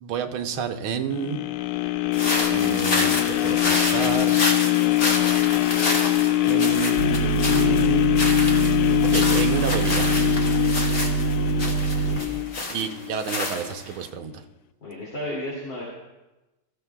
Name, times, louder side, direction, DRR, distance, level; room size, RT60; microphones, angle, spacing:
voice 1, 0.0-1.4 2.5-4.3 6.4-8.1 9.0-10.1 12.7-14.4, right 7 dB, 75° right, 6 dB, 1.6 m, -30 dB
sound 1, 1.1-13.2 13.7-13.8, left 17 dB, 80° left, 1.4 m, -23 dB
sound 2, 2.1-14.0, left 2 dB, 40° left, 1.8 m, -29 dB
sound 3, 7.0-12.2, right 6 dB, 50° right, 1.2 m, -25 dB
voice 2, 11.9-12.4 14.8-15.8, left 1 dB, 60° left, -5 dB, 3.4 m, -34 dB
22.0 x 14.0 x 2.3 m, 1.1 s
omnidirectional pair, 2.3 m